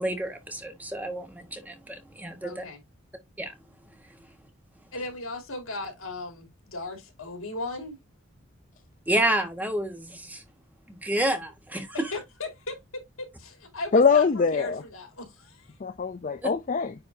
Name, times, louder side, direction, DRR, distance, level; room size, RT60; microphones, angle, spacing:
voice 1, 0.0-2.6 3.4-3.5 9.1-10.4 10.9-11.9 16.4-16.5, right 1 dB, 10° right, 1.2 m, -29 dB
voice 2, 2.4-2.8 4.9-8.0 11.9-15.8, left 2 dB, 85° left, 3.0 m, -37 dB
voice 3, 13.9-14.8 15.8-16.9, left 5 dB, 40° left, 0.4 m, -22 dB
9.7 x 4.1 x 2.7 m
head